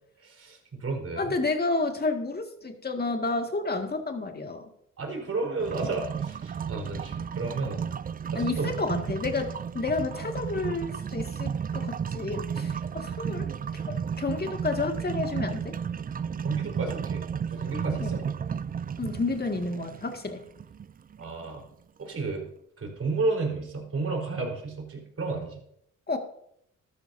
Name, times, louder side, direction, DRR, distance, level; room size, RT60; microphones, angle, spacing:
voice 1, 0.2-1.3 5.0-7.9 8.3-8.7 10.2-10.3 16.4-17.2 17.5-18.2 21.2-21.7 22.0-22.5 22.8-25.6, right 3 dB, 50° right, 1 dB, 4.3 m, -32 dB
voice 2, 1.2-4.6 8.4-13.5 13.7-15.8 18.0-18.1 19.0-20.4 26.1-26.2, left 3 dB, 30° left, 4 dB, 2.1 m, -30 dB
sound 1, 5.6-21.5, right 7 dB, 30° right, 0.4 m, -33 dB
13.5 x 13.0 x 2.7 m, 0.72 s
cardioid pair, 70°, 31 cm